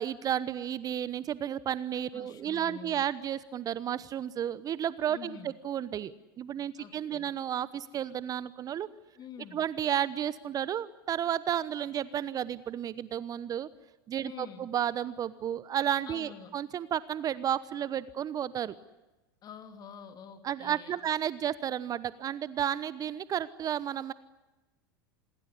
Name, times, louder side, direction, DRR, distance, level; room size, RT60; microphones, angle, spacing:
voice 1, 0.0-8.9 9.5-13.7 14.1-18.7 20.4-24.1, right 10 dB, 30° right, 18 dB, 0.9 m, -32 dB
voice 2, 2.1-3.1 5.1-5.5 6.8-7.3 9.1-9.6 14.2-14.7 16.1-16.5 19.4-21.0, left 7 dB, 35° left, 7 dB, 3.3 m, -47 dB
27.0 x 21.5 x 9.8 m, 1.1 s
figure-of-eight pair, 85°, 12 cm